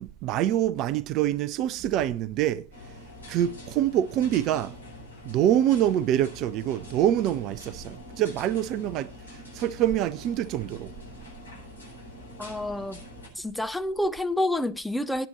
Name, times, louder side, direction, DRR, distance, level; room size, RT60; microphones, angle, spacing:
voice 1, 0.0-2.6 3.3-4.7 5.2-10.9, right 11 dB, 35° right, 0.5 m, -25 dB
sound 1, 2.7-13.3, left 1 dB, 80° left, 6.5 m, -45 dB
voice 2, 12.4-13.0 13.4-15.3, left 1 dB, 5° left, 0.8 m, -28 dB
17.5 x 8.9 x 3.1 m
figure-of-eight pair, 90°, 0 cm